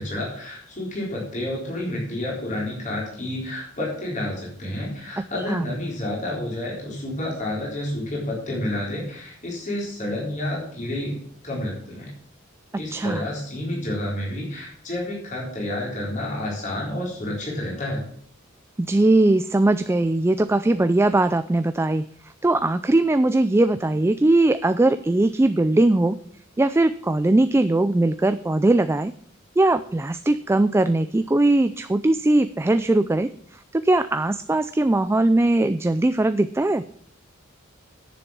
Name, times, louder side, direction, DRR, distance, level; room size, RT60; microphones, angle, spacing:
voice 1, 0.0-11.2 11.4-12.1 12.7-18.0, left 1 dB, 35° left, -3 dB, 4.0 m, -29 dB
voice 2, 5.2-5.7 12.7-13.2 18.8-26.2 26.6-29.1 29.6-36.8, right 2 dB, 10° right, 11 dB, 0.3 m, -20 dB
10.5 x 7.0 x 7.2 m, 0.63 s
head